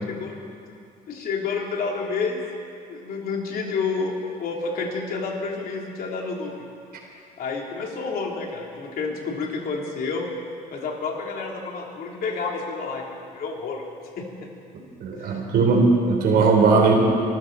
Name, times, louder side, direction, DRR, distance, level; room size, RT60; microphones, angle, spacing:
voice 1, 1.1-2.4 2.9-6.7 7.4-10.3 10.7-13.9 14.2-14.5 15.2-15.4, left 4 dB, 60° left, 0 dB, 3.0 m, -29 dB
voice 2, 15.0-17.0, right 4 dB, 65° right, 1 dB, 3.6 m, -18 dB
24.5 x 14.0 x 4.0 m, 2.4 s
cardioid pair, 110°, 17 cm